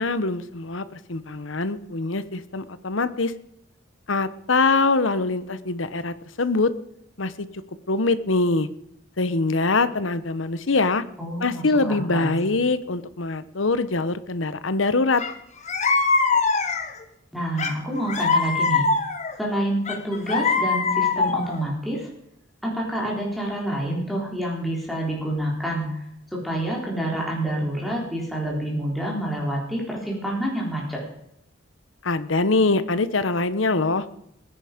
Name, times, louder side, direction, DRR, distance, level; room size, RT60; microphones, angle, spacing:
voice 1, 0.0-3.3 4.1-6.7 7.2-7.5 7.9-8.7 9.2-11.0 11.4-15.2 32.0-34.0, left 3 dB, 80° left, 14 dB, 1.0 m, -23 dB
voice 2, 11.2-12.4 17.3-18.8 19.4-22.1 22.6-26.0 26.3-31.0, right 1 dB, ahead, -3 dB, 3.7 m, -28 dB
sound 1, 15.2-15.3 15.7-17.0 17.6-19.3 19.9-21.6, left 4 dB, 40° left, 1.4 m, -22 dB
21.0 x 10.0 x 5.1 m, 0.78 s
head